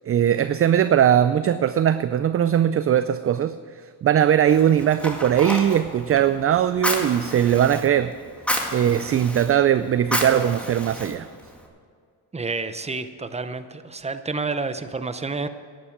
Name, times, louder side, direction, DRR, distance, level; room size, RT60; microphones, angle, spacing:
voice 1, 0.1-3.6 4.0-8.1 8.7-11.3, right 10 dB, 35° right, 13 dB, 0.4 m, -20 dB
Fire, 4.5-11.7, equal, 5° left, 1.9 m, -31 dB
voice 2, 12.3-15.5, right 3 dB, 15° right, 10 dB, 0.7 m, -29 dB
10.5 x 9.3 x 8.5 m, 2.1 s
cardioid pair, 90°, 45 cm